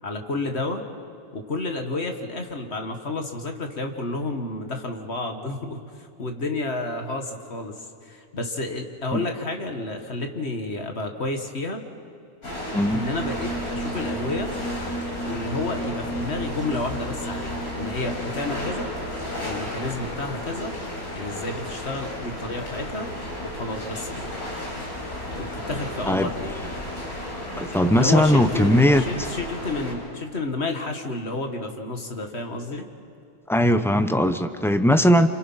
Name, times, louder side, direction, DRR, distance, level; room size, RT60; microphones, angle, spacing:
voice 1, 0.0-0.8 1.3-11.8 12.9-14.5 15.3-18.9 19.4-20.7 21.1-23.1 23.4-24.3 25.3-26.5 27.9-32.9, left 2 dB, 45° left, 4 dB, 1.9 m, -30 dB
sound 1, 12.4-29.9, left 1 dB, 80° left, 5.4 m, -33 dB
sound 2, 13.1-20.6, right 2 dB, 60° right, 3.0 m, -36 dB
voice 2, 27.6-29.0 33.5-35.3, equal, 5° left, 9 dB, 0.4 m, -19 dB
28.5 x 26.0 x 5.7 m, 2.4 s
omnidirectional pair, 1.6 m